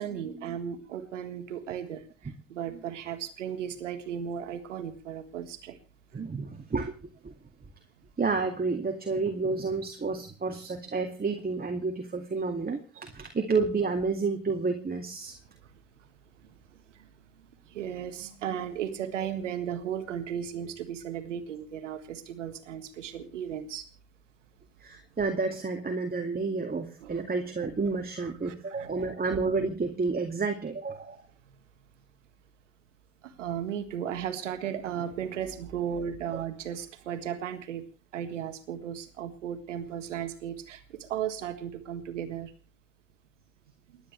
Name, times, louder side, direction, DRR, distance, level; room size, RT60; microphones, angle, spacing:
voice 1, 0.0-2.0 2.5-5.8 17.7-23.8 27.0-27.2 28.2-28.9 33.2-37.8 38.1-42.5, right 9 dB, 85° right, 10 dB, 1.8 m, -35 dB
voice 2, 6.1-6.9 7.2-7.3 8.2-15.3 24.8-31.3, right 4 dB, 25° right, 4 dB, 2.4 m, -30 dB
29.5 x 10.0 x 3.3 m, 0.35 s
hypercardioid pair, 55°, 36 cm